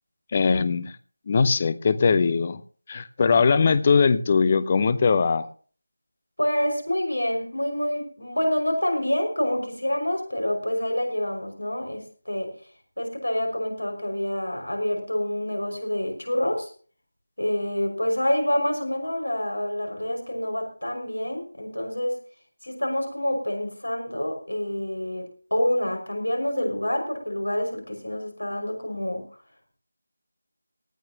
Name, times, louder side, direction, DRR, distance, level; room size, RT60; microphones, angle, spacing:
voice 1, 0.3-0.9 1.3-2.6 2.9-5.5, left 5 dB, 25° left, 15 dB, 0.8 m, -20 dB
voice 2, 6.4-12.6 13.0-16.7 17.4-22.2 22.6-29.3, left 1 dB, 75° left, 4 dB, 5.9 m, -27 dB
18.5 x 13.5 x 2.9 m, 0.41 s
figure-of-eight pair, 165°, 0 cm